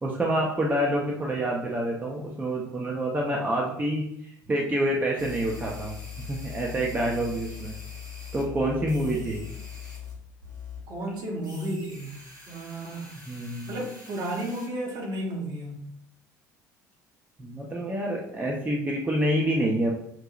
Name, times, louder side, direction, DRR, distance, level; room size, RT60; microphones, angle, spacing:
voice 1, 0.0-5.9 6.3-7.7 8.3-9.4 13.2-13.8 17.4-19.9, right 1 dB, 15° right, -2 dB, 0.7 m, -27 dB
sound 1, 5.2-10.2 10.4-10.8 11.4-14.7, left 7 dB, 85° right, 0.9 m, -41 dB
voice 2, 10.9-12.1 12.5-13.1 13.7-15.8, right 1 dB, 45° right, -2 dB, 1.2 m, -33 dB
5.9 x 2.7 x 2.4 m, 0.73 s
figure-of-eight pair, 60°, 10 cm